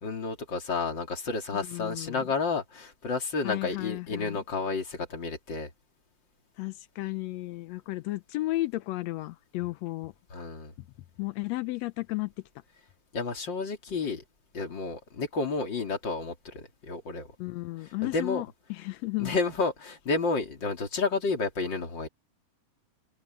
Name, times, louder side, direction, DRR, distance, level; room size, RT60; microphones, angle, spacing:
voice 1, 0.0-5.7 10.3-10.7 13.1-14.2 14.5-17.3 18.0-18.4 19.2-22.1, left 4 dB, 35° left, 3.3 m, -31 dB
voice 2, 1.5-2.2 3.4-4.4 6.6-10.1 11.2-12.3 17.4-19.4, left 19 dB, 80° left, 1.5 m, -33 dB
omnidirectional pair, 3.8 m